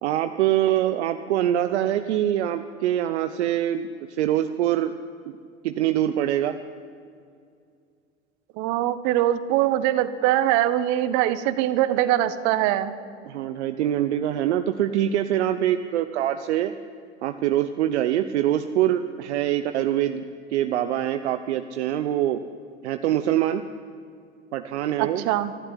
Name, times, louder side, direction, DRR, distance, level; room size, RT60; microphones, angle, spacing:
voice 1, 0.0-4.9 5.6-6.6 13.2-16.7 17.2-20.2 20.5-22.4 22.8-23.6 24.5-25.2, right 12 dB, 75° right, 9 dB, 0.9 m, -24 dB
voice 2, 8.6-13.0 25.0-25.5, right 13 dB, 55° right, 13 dB, 1.4 m, -22 dB
24.0 x 12.5 x 9.9 m, 2.3 s
hypercardioid pair, 85°, 34 cm